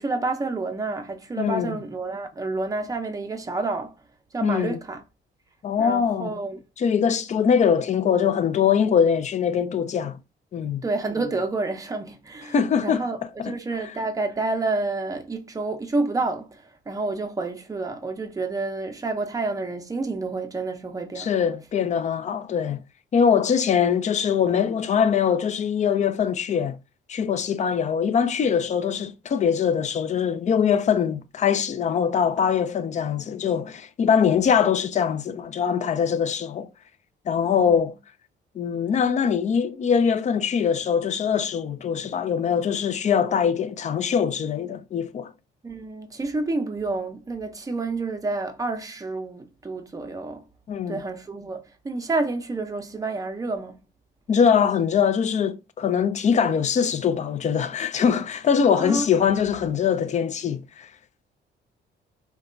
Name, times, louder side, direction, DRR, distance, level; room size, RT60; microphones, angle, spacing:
voice 1, 0.0-4.0 4.3-5.0 5.8-6.6 10.8-12.5 12.8-21.3 37.6-37.9 45.6-50.5 50.9-53.8 58.7-59.1, right 3 dB, 15° right, 0.5 m, -29 dB
voice 2, 1.4-1.8 4.4-4.8 5.6-6.4 6.8-10.2 10.5-10.8 12.5-13.0 13.4-13.5 21.2-22.8 23.1-26.8 27.1-36.7 37.3-37.9 38.6-45.3 50.7-51.0 54.3-60.9, left 7 dB, 35° left, 0.4 m, -22 dB
2.8 x 2.2 x 2.5 m
cardioid pair, 90°, 20 cm